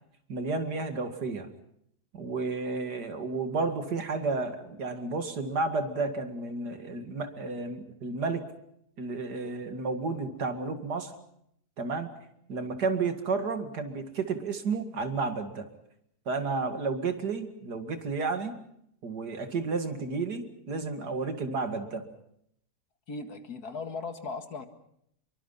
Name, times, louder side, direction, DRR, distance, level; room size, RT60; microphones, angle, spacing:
voice 1, 0.3-1.5 2.1-8.4 9.0-11.1 11.8-12.1 12.5-15.7 16.3-18.6 19.0-22.0, right 4 dB, 90° right, 7 dB, 2.7 m, -32 dB
voice 2, 23.1-24.7, left 4 dB, 70° left, 7 dB, 2.4 m, -37 dB
26.5 x 23.0 x 5.7 m, 0.72 s
omnidirectional pair, 1.7 m